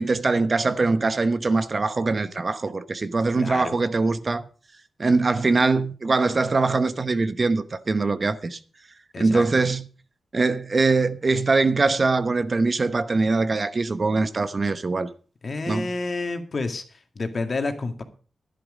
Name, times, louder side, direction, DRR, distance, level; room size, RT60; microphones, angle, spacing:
voice 1, 0.0-4.5 5.0-8.6 9.2-9.8 10.3-15.1 15.7-15.9, right 3 dB, 45° right, 1.0 m, -22 dB
voice 2, 3.4-3.7 9.1-9.6 15.4-18.0, left 3 dB, 50° left, 2.0 m, -30 dB
11.5 x 10.5 x 5.1 m
cardioid pair, 70°, 0 cm